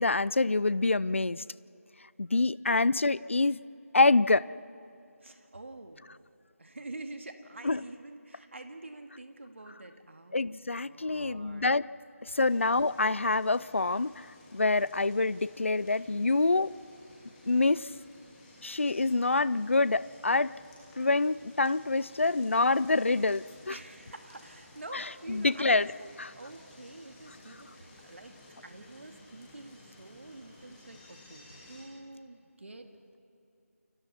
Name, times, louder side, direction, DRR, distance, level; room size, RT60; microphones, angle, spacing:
voice 1, 0.0-1.4 2.2-3.6 3.9-4.5 7.6-7.8 10.3-11.9 12.2-14.3 14.5-16.7 17.4-17.9 18.6-20.5 21.0-23.8 24.9-25.9 26.2-26.3, left 3 dB, 55° left, 20 dB, 0.5 m, -26 dB
voice 2, 2.6-2.9 5.2-6.1 6.6-10.6 10.9-11.7 23.7-26.1 26.3-28.3 28.6-32.9, right 2 dB, 55° right, 5 dB, 2.1 m, -47 dB
sound 1, 12.3-31.8, left 1 dB, 5° left, 1.4 m, -55 dB
29.0 x 27.0 x 4.3 m, 2.7 s
figure-of-eight pair, 175°, 8 cm